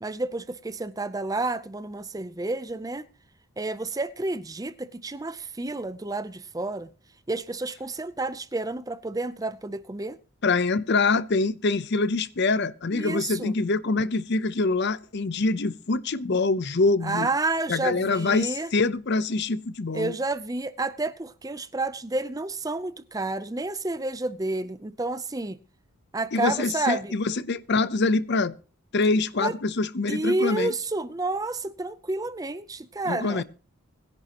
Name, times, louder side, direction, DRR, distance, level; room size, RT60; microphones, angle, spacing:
voice 1, 0.0-3.0 3.6-6.9 7.3-10.2 12.9-13.5 17.0-18.7 19.9-25.6 26.1-27.1 29.4-29.5 30.1-33.4, right 2 dB, 15° right, 0.5 m, -30 dB
voice 2, 10.4-17.3 17.7-20.1 26.3-28.6 28.9-30.7 33.1-33.4, left 3 dB, 50° left, 0.7 m, -25 dB
21.0 x 11.0 x 2.9 m
head